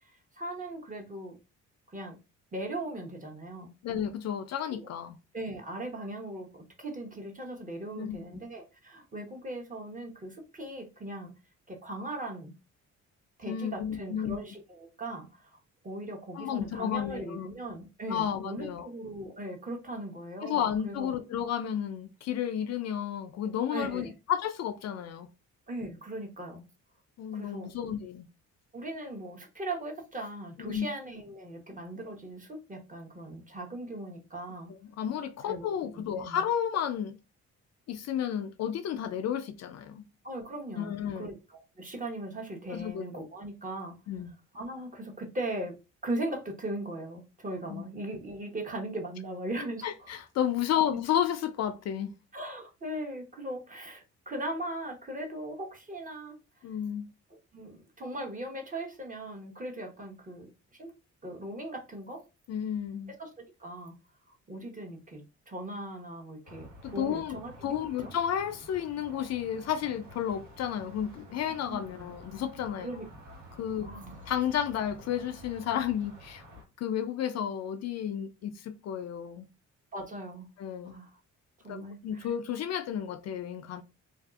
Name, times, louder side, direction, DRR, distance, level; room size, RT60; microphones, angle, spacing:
voice 1, 0.4-1.4 1.9-2.2 2.5-3.7 4.7-4.8 5.3-11.3 11.7-12.5 13.4-15.5 15.8-21.1 23.7-24.1 25.7-26.6 27.3-27.7 28.7-34.7 35.4-36.4 40.2-44.0 44.5-45.8 46.0-50.1 50.9-51.0 52.3-56.4 57.3-60.9 61.2-62.2 63.2-63.3 63.6-64.0 64.3-67.8 68.0-68.1 71.7-72.1 72.8-73.3 73.8-74.2 79.9-80.5 80.8-81.1 81.6-82.3, right 1 dB, 25° right, 0.9 m, -39 dB
voice 2, 3.8-5.2 8.0-8.3 13.5-14.4 16.3-17.5 18.1-18.9 20.4-25.3 27.2-28.3 30.6-30.9 34.7-37.2 37.9-40.0 40.8-41.3 42.7-43.0 44.1-44.3 47.7-47.8 49.8-52.1 56.6-57.1 62.5-63.1 66.8-72.9 73.6-73.9 74.3-76.4 76.8-79.5 80.6-80.9 81.7-83.8, left 9 dB, 60° left, 0.4 m, -32 dB
sound 1, 66.4-76.6, equal, 80° right, 1.2 m, -50 dB
2.6 x 2.3 x 2.3 m
cardioid pair, 90°, 30 cm